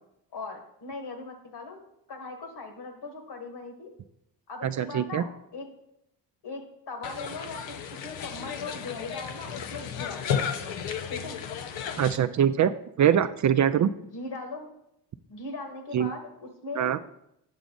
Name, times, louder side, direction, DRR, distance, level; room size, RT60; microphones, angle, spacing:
voice 1, 0.3-1.8 2.1-3.9 4.5-5.7 6.4-10.7 11.1-11.4 14.1-14.7 15.3-16.9, left 3 dB, 60° left, 5 dB, 1.7 m, -39 dB
voice 2, 4.6-5.2 12.0-13.9 15.9-16.1 16.8-17.0, right 9 dB, 45° right, 11 dB, 0.4 m, -23 dB
sound 1, 7.0-12.2, left 8 dB, 85° left, 0.6 m, -33 dB
7.2 x 6.9 x 3.8 m, 0.78 s
supercardioid pair, 55°, 44 cm